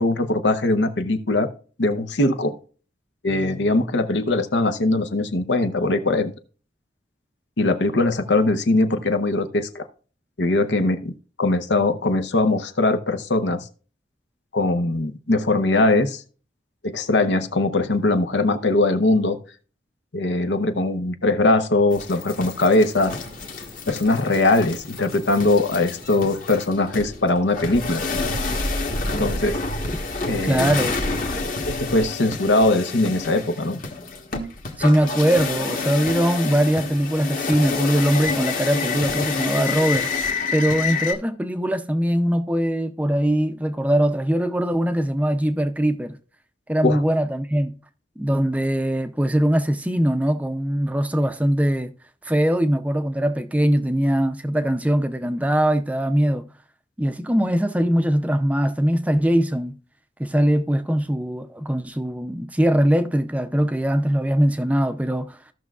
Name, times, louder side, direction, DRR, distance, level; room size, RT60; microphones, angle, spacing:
voice 1, 0.0-1.5 1.8-2.6 3.2-6.3 7.6-9.8 10.4-11.1 11.4-13.6 14.5-16.2 16.8-19.4 20.1-23.1 23.9-28.0 29.2-29.6 30.3-30.7 31.7-33.8 46.8-47.0, left 2 dB, 90° left, 0.8 m, -21 dB
sound 1, 21.9-41.1, left 4 dB, 50° left, 1.2 m, -28 dB
voice 2, 30.4-31.0 34.8-46.2 46.7-47.8 48.2-51.9 52.2-56.5 57.0-59.7 60.2-65.4, equal, 10° right, 0.4 m, -21 dB
16.0 x 6.1 x 2.4 m
head